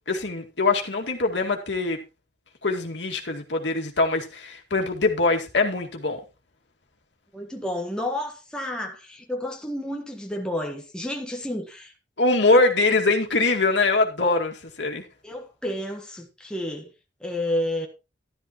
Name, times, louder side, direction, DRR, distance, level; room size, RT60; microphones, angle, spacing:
voice 1, 0.1-2.0 2.6-6.2 12.2-15.0, left 3 dB, 80° left, 2.1 m, -23 dB
voice 2, 7.3-11.9 12.5-12.6 15.2-16.9 17.2-17.9, left 1 dB, 5° left, 1.4 m, -30 dB
12.5 x 12.0 x 3.0 m
head